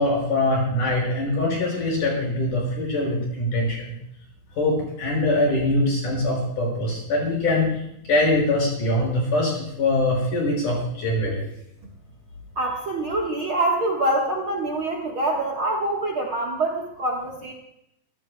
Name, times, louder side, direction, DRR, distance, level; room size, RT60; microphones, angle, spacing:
voice 1, 0.0-3.8 4.6-7.8 8.1-11.4, left 1 dB, 60° left, -2 dB, 7.4 m, -23 dB
voice 2, 12.6-17.5, right 2 dB, 50° right, 0 dB, 1.7 m, -25 dB
24.0 x 14.5 x 2.3 m, 0.77 s
omnidirectional pair, 4.0 m